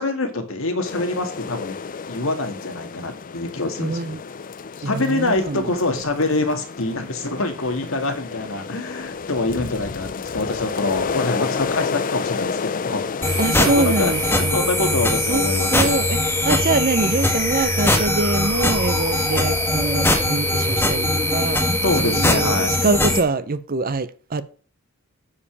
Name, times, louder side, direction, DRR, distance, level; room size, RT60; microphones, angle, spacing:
voice 1, 0.0-1.8 2.1-4.1 4.8-16.1 21.8-22.8, left 2 dB, 70° left, 2.0 m, -25 dB
sound 1, 0.8-14.5, left 5 dB, 40° left, 0.5 m, -31 dB
voice 2, 3.8-4.2 4.8-5.7 13.4-14.6 15.3-24.4, right 3 dB, 45° right, 0.7 m, -24 dB
sound 2, 13.2-23.2, left 1 dB, 10° left, 1.5 m, -21 dB
9.8 x 5.0 x 7.1 m
head